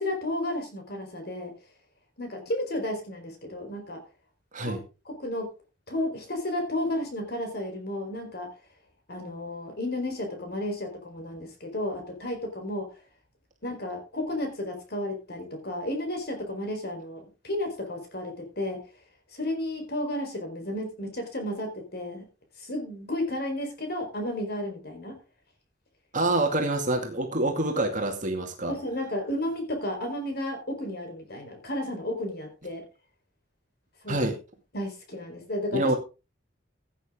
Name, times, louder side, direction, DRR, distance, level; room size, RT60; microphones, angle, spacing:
voice 1, 0.0-1.5 2.2-4.0 4.6-5.5 5.9-8.5 9.1-12.9 13.6-18.8 19.3-22.2 22.6-25.1 28.7-32.8 34.0-34.3 34.7-35.9, left 1 dB, 55° left, 4 dB, 4.4 m, -32 dB
voice 2, 26.1-28.7 34.1-34.4 35.7-35.9, right 2 dB, 40° right, 3 dB, 2.3 m, -26 dB
16.5 x 9.0 x 3.8 m, 0.31 s
head